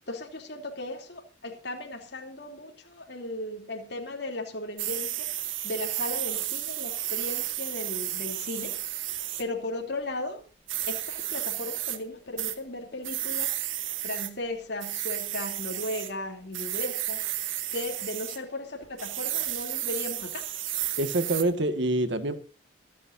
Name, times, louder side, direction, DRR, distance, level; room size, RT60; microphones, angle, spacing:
voice 1, 0.1-10.4 10.8-13.6 14.0-20.5, left 1 dB, 55° left, 2 dB, 3.1 m, -36 dB
sound 1, 4.8-9.4 10.7-12.0 12.4-12.6 13.0-14.3 14.8-16.1 16.5-18.4 19.0-21.4, right 13 dB, 85° right, 1.8 m, -32 dB
voice 2, 21.0-22.4, right 1 dB, 65° right, 10 dB, 1.8 m, -26 dB
25.0 x 9.5 x 2.7 m, 0.36 s
head